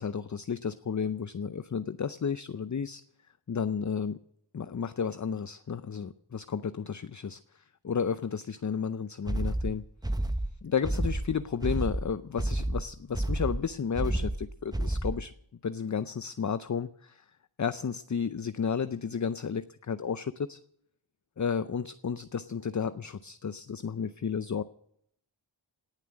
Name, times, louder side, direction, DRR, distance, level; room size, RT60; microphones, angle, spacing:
voice 1, 0.0-3.0 3.5-4.2 4.5-7.4 7.8-10.3 10.6-15.3 15.6-17.3 17.6-20.6 21.4-24.6, left 6 dB, 40° left, 13 dB, 0.6 m, -32 dB
sound 1, 9.3-15.3, right 1 dB, 10° right, 0.7 m, -30 dB
18.5 x 7.4 x 9.5 m, 0.71 s
wide cardioid pair, 75°, 49 cm